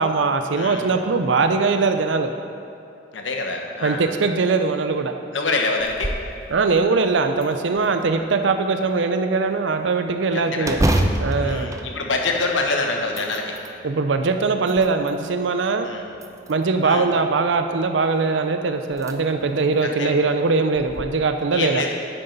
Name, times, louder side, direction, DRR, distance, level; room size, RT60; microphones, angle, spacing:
voice 1, 0.0-2.3 3.8-5.1 6.5-10.8 11.2-11.7 13.8-15.9 16.5-21.8, right 4 dB, 75° right, 7 dB, 0.5 m, -21 dB
voice 2, 0.6-0.9 3.1-4.1 5.3-6.1 8.2-8.4 10.3-10.8 11.3-13.6 15.8-16.1 16.8-17.0 19.8-20.1 21.5-21.9, left 3 dB, 90° left, 2 dB, 1.2 m, -26 dB
sound 1, 5.8-6.3 6.8-6.9 7.4-8.2 10.6-12.6 13.0-13.8 14.4-15.2 16.1-16.8 18.3-18.4 18.9-19.1 19.6-19.7 20.8-21.0, right 1 dB, 15° right, 0.5 m, -26 dB
9.5 x 9.1 x 4.1 m, 2.7 s
head